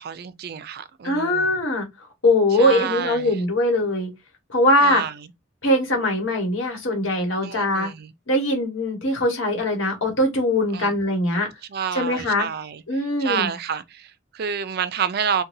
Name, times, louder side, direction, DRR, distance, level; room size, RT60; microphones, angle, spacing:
voice 1, 0.0-1.6 2.5-3.4 4.8-5.1 7.4-8.1 10.7-10.9 11.7-12.8 13.2-15.4, right 7 dB, 55° right, 0.4 m, -29 dB
voice 2, 1.0-1.9 2.2-4.1 4.5-5.0 5.6-7.9 8.3-11.5 11.9-12.5 12.9-13.5, left 1 dB, 80° left, 1.4 m, -21 dB
4.0 x 2.2 x 2.6 m
head